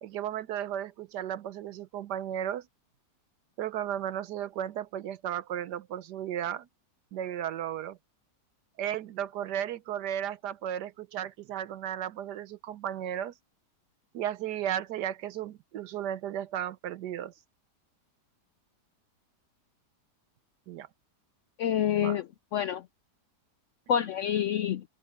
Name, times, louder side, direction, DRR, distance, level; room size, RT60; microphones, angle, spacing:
voice 1, 0.0-2.7 3.6-6.7 7.1-8.0 8.8-13.3 14.1-17.3 20.7-20.9 22.0-22.2, right 10 dB, 75° right, 1.3 m, -34 dB
voice 2, 21.6-22.8 23.9-24.8, left 9 dB, 85° left, 0.6 m, -28 dB
omnidirectional pair, 1.8 m